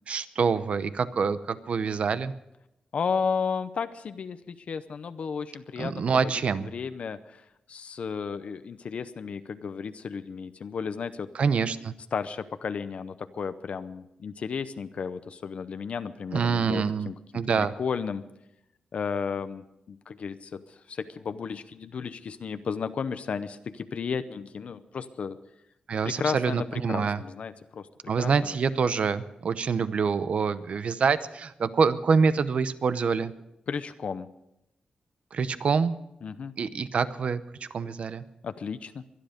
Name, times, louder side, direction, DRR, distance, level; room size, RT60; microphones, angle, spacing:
voice 1, 0.1-2.3 5.8-6.7 11.4-11.9 16.3-17.1 17.3-17.7 25.9-27.2 28.1-33.3 35.3-35.9 36.6-38.2, right 5 dB, 60° right, 13 dB, 0.8 m, -26 dB
voice 2, 2.9-11.3 12.1-17.2 17.6-18.2 18.9-25.4 26.0-27.9 28.2-28.6 28.8-28.9 33.7-34.3 36.2-36.5 38.4-39.0, left 6 dB, 60° left, 11 dB, 0.7 m, -33 dB
23.5 x 10.5 x 5.1 m, 0.84 s
wide cardioid pair, 125°, 2 cm